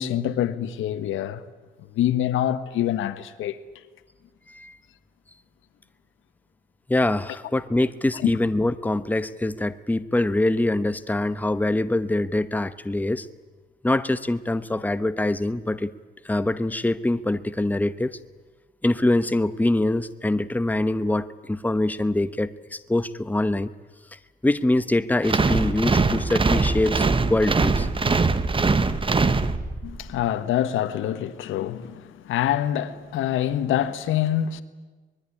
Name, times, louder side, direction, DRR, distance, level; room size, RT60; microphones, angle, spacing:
voice 1, 0.0-1.4 1.9-3.6 8.2-8.3 29.8-34.6, left 11 dB, 85° left, 1.5 m, -25 dB
voice 2, 6.9-13.3 13.8-15.9 16.2-18.2 18.8-23.7 24.4-27.9, left 2 dB, 10° left, 1.0 m, -24 dB
sound 1, 25.2-30.0, right 3 dB, 25° right, 1.4 m, -22 dB
24.0 x 21.0 x 10.0 m
cardioid pair, 90°, 20 cm